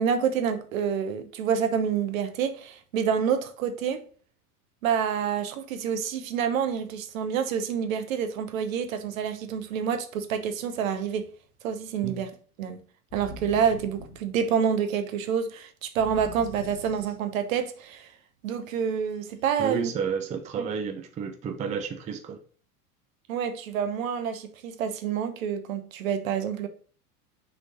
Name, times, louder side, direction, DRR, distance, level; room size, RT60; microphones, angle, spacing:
voice 1, 0.0-4.0 4.8-11.3 11.6-12.3 12.6-12.8 13.1-18.1 18.4-19.9 20.6-20.7 23.3-26.7, right 7 dB, 60° right, 1.0 m, -28 dB
sound 1, 13.1-14.8 16.0-17.6, equal, 10° left, 3.1 m, -44 dB
voice 2, 19.6-22.4, right 6 dB, 15° right, 0.5 m, -31 dB
6.0 x 3.8 x 4.1 m
figure-of-eight pair, 85°, 45 cm